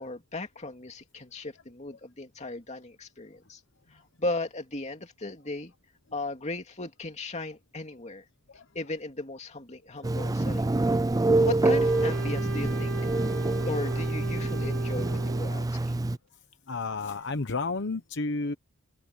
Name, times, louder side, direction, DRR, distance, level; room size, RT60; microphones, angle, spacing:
voice 1, 0.0-3.6 4.2-5.7 6.1-8.2 8.7-10.7 11.4-13.0 13.6-16.0, left 2 dB, 30° left, 2.6 m, -36 dB
Telephone, 10.0-16.2, right 2 dB, 15° right, 0.4 m, -26 dB
Wind instrument woodwind instrument, 11.7-15.7, right 3 dB, 70° right, 3.0 m, -38 dB
voice 2, 16.7-18.5, left 3 dB, 55° left, 1.0 m, -31 dB
open air
head